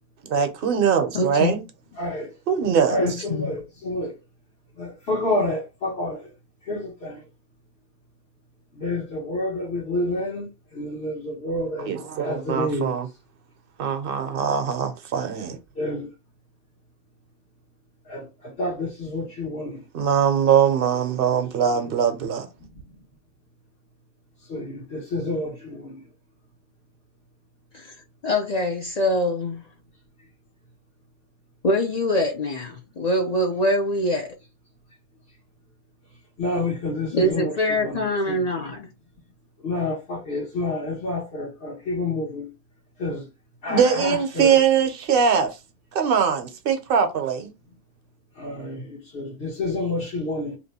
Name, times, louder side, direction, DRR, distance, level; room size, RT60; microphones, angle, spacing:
voice 1, 0.2-1.6 2.5-3.2 11.8-13.1 13.8-15.6 19.9-22.5 43.7-45.6 45.9-47.5, right 7 dB, 60° right, 0.8 m, -22 dB
voice 2, 1.1-1.5 3.0-3.6 27.7-27.9 28.2-29.6 31.6-34.3 37.1-38.9, left 1 dB, 50° left, 0.6 m, -24 dB
voice 3, 2.0-2.3 2.9-4.1 4.8-6.2 6.7-7.2 8.8-10.5 10.7-12.9 15.8-16.1 18.1-19.8 24.5-26.0 36.4-37.5 37.8-38.0 38.3-38.4 39.6-42.5 43.0-43.3 43.6-44.6 48.4-50.6, left 2 dB, 70° left, 1.3 m, -28 dB
2.9 x 2.2 x 4.0 m
omnidirectional pair, 1.1 m